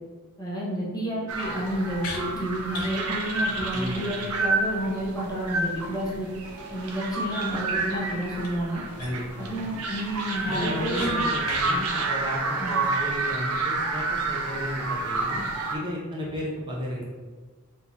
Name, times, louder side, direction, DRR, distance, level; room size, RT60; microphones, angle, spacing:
voice 1, 0.4-6.3 6.7-8.8 9.4-11.2 11.7-11.8 12.6-12.7, right 1 dB, 15° left, -5 dB, 0.7 m, -30 dB
sound 1, 1.3-15.8, right 3 dB, 75° right, 0.5 m, -29 dB
sound 2, 2.0-2.2 2.7-3.0 3.3-3.4 3.7-3.8 4.1-4.2 8.4-8.5 9.0-9.3 9.7-9.8 10.2-11.1 11.4-11.7, left 3 dB, 75° left, 0.6 m, -37 dB
voice 2, 3.7-4.1 9.0-9.5 10.5-12.4 12.7-15.4 15.7-17.0, equal, 20° right, -5 dB, 0.5 m, -33 dB
3.5 x 2.9 x 2.7 m, 1.4 s
head